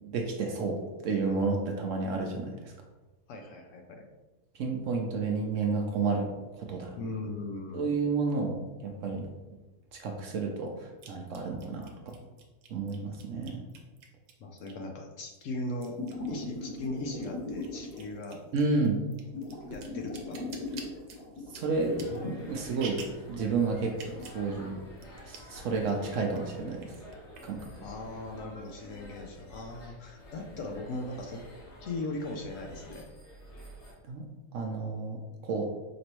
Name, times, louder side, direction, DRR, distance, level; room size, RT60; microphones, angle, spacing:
voice 1, 0.0-2.6 4.6-7.0 7.7-9.3 9.9-12.2 12.7-13.6 18.5-19.0 21.5-22.0 22.2-24.8 25.3-26.9 27.4-27.6 34.1-34.3 34.5-35.7, right 4 dB, 65° right, 2 dB, 0.9 m, -31 dB
voice 2, 3.3-4.0 6.9-7.9 14.4-16.0 16.3-19.0 19.7-20.4 27.8-31.4 31.8-33.1, left 2 dB, 65° left, 2 dB, 0.8 m, -39 dB
sound 1, 9.2-9.3 11.0-14.9 15.3-16.8 17.1-23.3 23.9-24.4 24.7-24.8 25.0-25.6 25.9-26.4 26.8-27.6, right 5 dB, 85° right, 1.2 m, -48 dB
sound 2, 16.0-18.2 19.0-22.5 22.9-23.0 24.1-24.3, left 2 dB, 90° left, 1.5 m, -39 dB
sound 3, 21.7-33.9, left 1 dB, 50° left, 1.5 m, -49 dB
5.2 x 3.0 x 2.9 m, 1.1 s
omnidirectional pair, 1.6 m